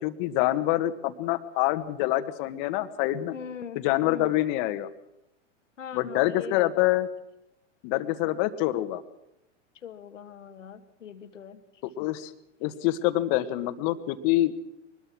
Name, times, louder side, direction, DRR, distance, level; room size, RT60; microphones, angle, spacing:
voice 1, 0.0-3.3 3.7-4.9 5.9-7.1 7.8-9.0 12.0-12.3 12.6-14.5, left 15 dB, 45° left, 11 dB, 1.6 m, -26 dB
voice 2, 3.3-4.3 5.8-6.7 9.7-12.1, left 8 dB, 80° left, 10 dB, 1.7 m, -41 dB
23.0 x 20.5 x 6.2 m, 0.86 s
hypercardioid pair, 100°, 37 cm